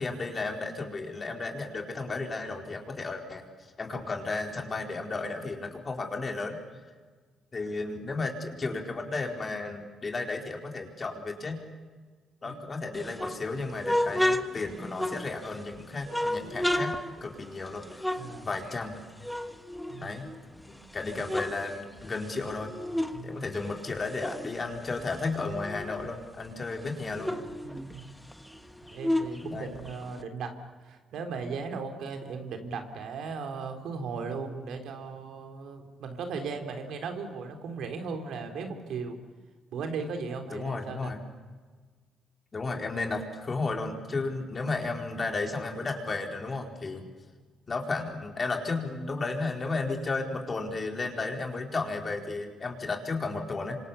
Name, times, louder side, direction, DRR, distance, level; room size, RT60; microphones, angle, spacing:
voice 1, 0.0-3.4 3.8-6.6 7.5-11.6 12.4-18.1 18.4-19.0 20.0-20.3 20.6-22.7 23.2-27.3 29.5-29.7 40.5-41.2 42.5-47.1 47.7-53.8, left 3 dB, 35° left, 2 dB, 4.4 m, -33 dB
sound 1, 12.9-15.6 16.1-19.0 19.2-20.6 21.0-23.2 23.5-26.1 26.4-26.5 26.8-30.2, left 1 dB, 5° left, 1.5 m, -32 dB
voice 2, 18.2-18.5 19.9-20.1 23.1-23.5 27.6-28.1 28.9-30.6 30.8-39.2 39.7-41.1, right 5 dB, 75° right, 4 dB, 3.7 m, -37 dB
27.5 x 26.0 x 7.1 m, 1.4 s
cardioid pair, 90°, 0 cm